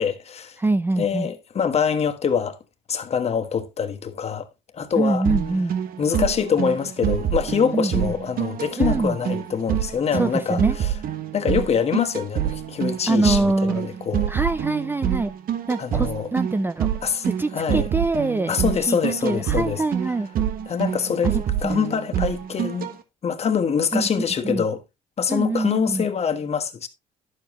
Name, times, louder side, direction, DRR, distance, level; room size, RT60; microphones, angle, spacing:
voice 1, 0.0-0.6 1.0-2.6 2.9-4.5 4.7-5.2 6.0-10.9 11.3-14.3 15.8-16.3 17.0-17.2 17.5-17.9 18.4-19.8 20.7-21.3 21.6-22.9 23.2-24.8 25.2-26.9, left 7 dB, 40° left, 1.4 m, -24 dB
voice 2, 0.6-1.3 5.0-5.7 7.7-8.1 8.8-9.2 10.1-10.8 13.1-13.8 14.3-15.3 15.7-16.9 17.3-18.6 18.9-20.3 21.2-21.8 23.9-24.6 25.3-26.1, right 2 dB, 10° right, 0.4 m, -24 dB
sound 1, 5.2-22.9, right 9 dB, 60° right, 1.3 m, -26 dB
11.0 x 7.2 x 3.0 m
cardioid pair, 110°, 17 cm